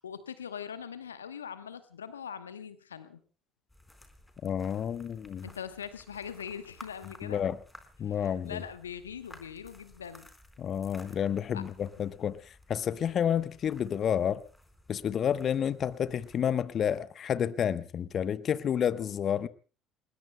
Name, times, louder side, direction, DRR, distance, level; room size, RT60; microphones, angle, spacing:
voice 1, 0.0-3.2 5.4-7.4 8.0-10.3 11.5-11.6, left 7 dB, 85° left, 1.0 m, -42 dB
sound 1, 3.7-16.4, left 1 dB, 10° left, 4.4 m, -56 dB
voice 2, 4.4-5.5 7.2-7.6 8.0-8.6 10.6-14.4 14.9-19.5, left 9 dB, 45° left, 1.0 m, -30 dB
29.5 x 20.5 x 2.2 m
figure-of-eight pair, 55°, 0 cm